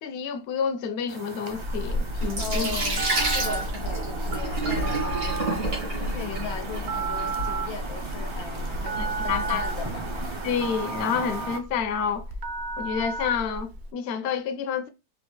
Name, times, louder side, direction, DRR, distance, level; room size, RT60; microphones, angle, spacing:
voice 1, 0.0-2.8 9.0-9.6 10.4-12.3 12.8-14.9, left 7 dB, 60° left, 0.7 m, -29 dB
sound 1, 1.1-11.6, right 3 dB, 40° right, 0.4 m, -38 dB
Sink (filling or washing), 1.5-10.3, right 1 dB, 85° right, 2.1 m, -30 dB
voice 2, 2.4-3.1 3.3-10.1, left 6 dB, 85° left, 1.2 m, -38 dB
Telephone, 2.5-13.9, right 3 dB, 60° right, 0.9 m, -33 dB
4.8 x 2.5 x 2.2 m
omnidirectional pair, 1.5 m